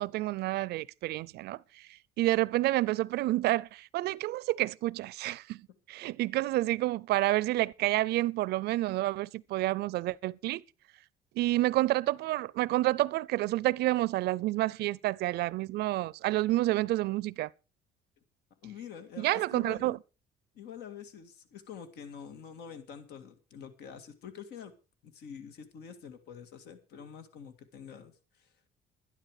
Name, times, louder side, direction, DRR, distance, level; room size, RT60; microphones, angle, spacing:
voice 1, 0.0-1.9 2.2-10.6 11.4-17.5 19.2-20.0, right 17 dB, 75° right, 0.5 m, -29 dB
voice 2, 18.6-20.0 20.5-24.7 25.0-28.5, left 7 dB, 75° left, 2.0 m, -46 dB
12.0 x 11.5 x 4.9 m
cardioid pair, 110°, 17 cm